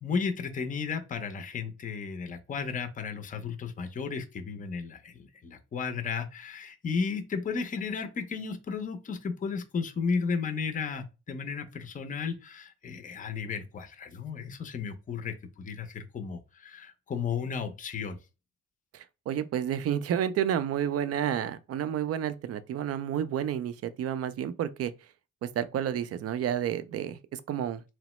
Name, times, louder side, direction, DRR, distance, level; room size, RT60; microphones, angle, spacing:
voice 1, 0.0-18.2, left 5 dB, 25° left, 0.5 m, -34 dB
voice 2, 18.9-24.9 25.4-27.8, right 10 dB, 55° right, 0.4 m, -30 dB
3.0 x 2.0 x 3.0 m
cardioid pair, 90°, 30 cm